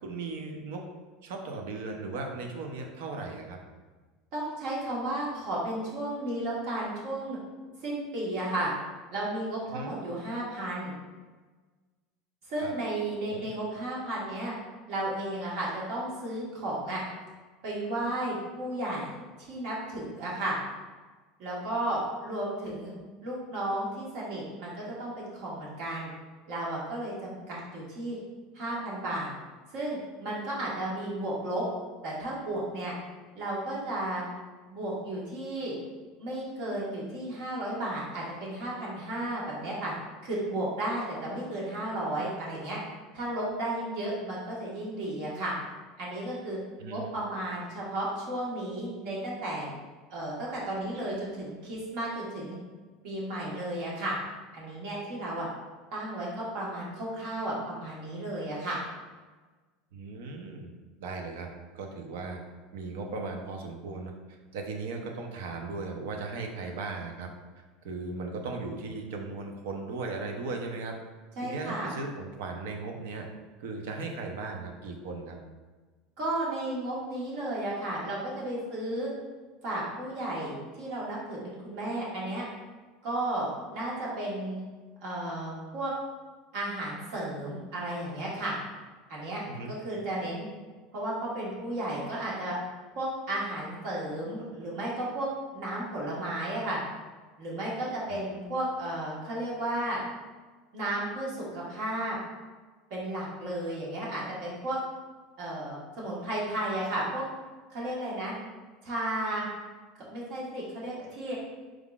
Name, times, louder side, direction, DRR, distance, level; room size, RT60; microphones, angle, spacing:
voice 1, 0.0-0.9 1.2-3.6 9.7-9.9 12.6-12.7 13.3-13.5 46.8-47.1 59.9-60.7 61.0-61.5 61.7-62.4 62.7-64.1 64.5-67.3 67.6-71.0 71.4-73.3 73.6-75.4 89.5-89.7, right 3 dB, 80° right, 3 dB, 0.7 m, -37 dB
voice 2, 4.3-7.4 7.8-8.7 9.1-10.9 12.5-14.5 14.9-17.0 17.6-19.1 19.4-20.6 21.4-22.9 23.2-26.1 26.5-28.2 28.5-29.3 29.7-31.6 32.0-32.9 33.3-34.2 34.7-35.7 36.2-39.9 40.2-42.8 43.1-45.5 46.0-46.6 46.9-49.7 50.1-52.6 53.0-54.2 54.5-55.5 55.9-58.8 71.4-71.9 76.2-79.1 79.6-82.4 83.0-84.6 85.0-85.9 86.5-88.5 89.1-89.4 89.7-90.5 90.9-92.6 92.9-96.8 97.4-100.0 100.7-102.2 102.9-104.8 105.4-107.2 107.7-108.3 108.8-109.5 110.1-111.4, right 1 dB, 55° right, -5 dB, 1.5 m, -33 dB
4.7 x 3.7 x 2.4 m, 1.3 s
supercardioid pair, 165°, 0 cm